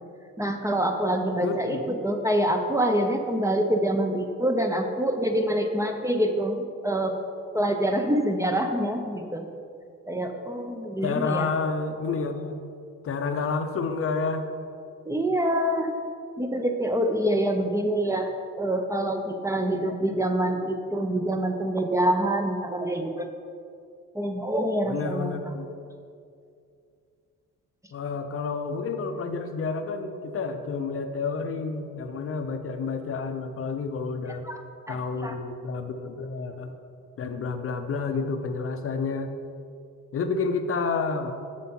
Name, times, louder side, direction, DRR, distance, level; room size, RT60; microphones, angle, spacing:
voice 1, 0.4-7.2 7.5-9.5 10.1-11.5 15.1-15.9 16.4-18.3 18.6-23.3 24.1-25.4 34.4-34.6 34.9-35.4, right 1 dB, 10° right, 4 dB, 0.6 m, -26 dB
voice 2, 1.4-1.8 11.0-12.6 13.0-14.4 24.9-25.7 27.9-34.4 34.9-36.8 37.2-39.3 40.1-41.3, left 4 dB, 50° left, 7 dB, 0.6 m, -29 dB
7.0 x 6.5 x 4.4 m, 2.4 s
cardioid pair, 90°, 30 cm